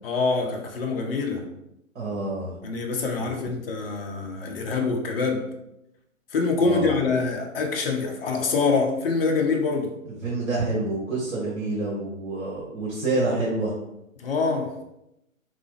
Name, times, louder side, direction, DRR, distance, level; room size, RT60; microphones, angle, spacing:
voice 1, 0.0-1.4 2.6-5.4 6.3-9.9 14.2-14.7, left 4 dB, 45° left, 2 dB, 0.8 m, -25 dB
voice 2, 1.9-2.6 3.2-3.3 6.6-7.0 10.0-13.7, right 2 dB, 60° right, -5 dB, 1.3 m, -28 dB
3.7 x 3.2 x 3.2 m, 0.85 s
figure-of-eight pair, 130°, 40 cm